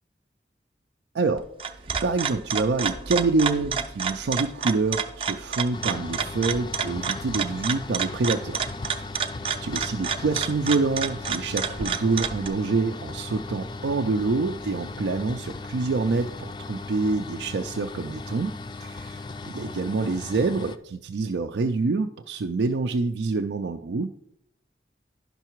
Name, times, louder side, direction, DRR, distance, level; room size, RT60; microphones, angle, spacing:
sound 1, 1.4-12.5, right 6 dB, 30° right, 0.5 m, -30 dB
voice 1, 2.0-8.7 9.0-9.1 9.6-18.5 18.8-24.1, right 3 dB, 85° right, 5 dB, 0.4 m, -26 dB
sound 2, 5.7-20.8, left 3 dB, 25° left, 0.4 m, -37 dB
11.0 x 5.7 x 4.5 m, 0.74 s
head